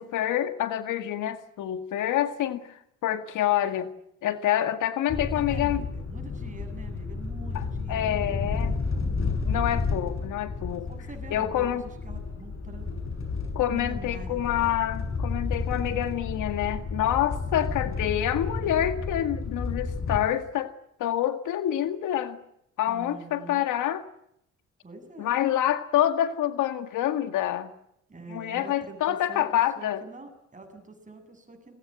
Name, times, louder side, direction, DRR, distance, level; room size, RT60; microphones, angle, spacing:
voice 1, 0.0-3.9 4.2-5.8 7.5-8.7 9.4-10.9 11.3-11.8 13.6-20.7 21.0-22.4 22.8-24.0 25.2-27.7 28.3-30.0, left 11 dB, 85° left, 9 dB, 1.9 m, -27 dB
sound 1, 5.1-20.2, left 4 dB, 45° left, 6.8 m, -31 dB
voice 2, 5.1-8.6 8.8-9.0 10.9-12.9 13.7-14.4 22.9-23.7 24.8-25.4 28.1-31.7, right 3 dB, 25° right, 6 dB, 7.8 m, -45 dB
29.5 x 22.0 x 7.8 m, 0.76 s
cardioid pair, 90°, 30 cm